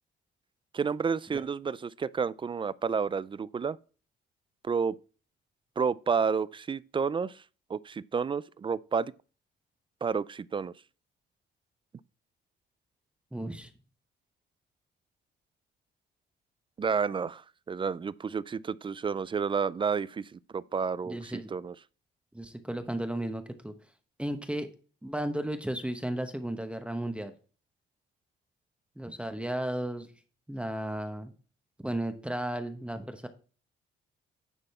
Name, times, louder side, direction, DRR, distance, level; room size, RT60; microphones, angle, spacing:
voice 1, 0.7-3.8 4.6-5.0 5.8-7.4 7.7-9.1 10.0-10.7 16.8-21.2 21.5-21.7, right 6 dB, 25° right, 0.3 m, -30 dB
voice 2, 13.3-13.7 21.0-21.5 22.3-23.7 24.2-24.7 25.0-27.3 29.0-30.1 30.5-31.3 31.8-33.3, right 1 dB, 5° right, 1.0 m, -34 dB
9.9 x 4.2 x 4.2 m
cardioid pair, 90°, 20 cm